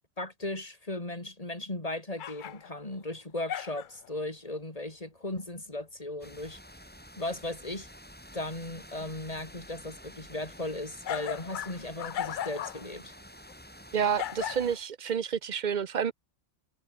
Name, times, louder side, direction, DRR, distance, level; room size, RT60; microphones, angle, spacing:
voice 1, 0.2-6.6 7.2-7.9 8.3-13.1, left 2 dB, 30° left, 3.7 m, -37 dB
sound 1, 2.2-3.0 3.5-4.1 11.0-12.8 13.5-13.6 14.2-14.8, left 10 dB, 55° left, 0.6 m, -36 dB
sound 2, 6.2-14.8, equal, 5° left, 6.9 m, -50 dB
voice 2, 13.9-16.1, right 7 dB, 45° right, 0.8 m, -29 dB
omnidirectional pair, 1.3 m